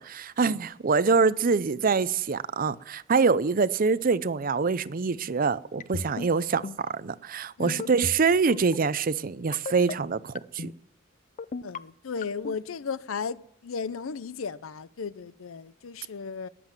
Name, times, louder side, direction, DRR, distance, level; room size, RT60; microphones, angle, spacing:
voice 1, 0.0-10.7, right 4 dB, 45° right, 0.5 m, -25 dB
sound 1, 5.8-6.3 6.6-6.9 7.7-8.2 8.5-8.8 9.5-9.9 10.3-10.7 11.4-11.8 12.2-12.5, left 4 dB, 40° left, 0.4 m, -34 dB
voice 2, 7.6-8.0 11.6-16.5, left 5 dB, 85° left, 0.6 m, -35 dB
20.0 x 7.7 x 7.4 m
head